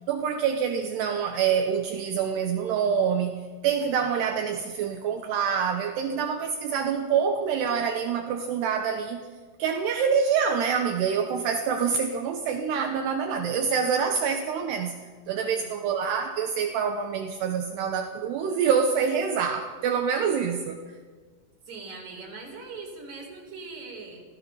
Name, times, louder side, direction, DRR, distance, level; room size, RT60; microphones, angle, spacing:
voice 1, 0.1-9.2 9.6-15.0 15.3-20.8, right 7 dB, 75° right, 5 dB, 2.8 m, -26 dB
voice 2, 15.3-15.8 21.7-24.2, right 3 dB, 40° right, 1 dB, 5.0 m, -41 dB
27.0 x 17.5 x 5.7 m, 1.5 s
omnidirectional pair, 5.6 m